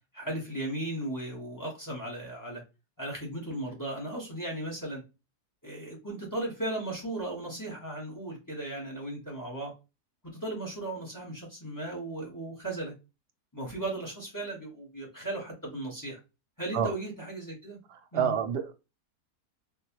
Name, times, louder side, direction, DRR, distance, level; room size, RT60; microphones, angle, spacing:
voice 1, 0.1-2.6 3.0-5.0 5.6-9.7 10.4-12.9 13.5-16.2 16.6-17.8 18.1-18.3, right 1 dB, 15° left, 1.3 m, -36 dB
voice 2, 17.9-18.7, right 8 dB, 85° right, 1.3 m, -29 dB
3.6 x 2.6 x 2.9 m
omnidirectional pair, 1.7 m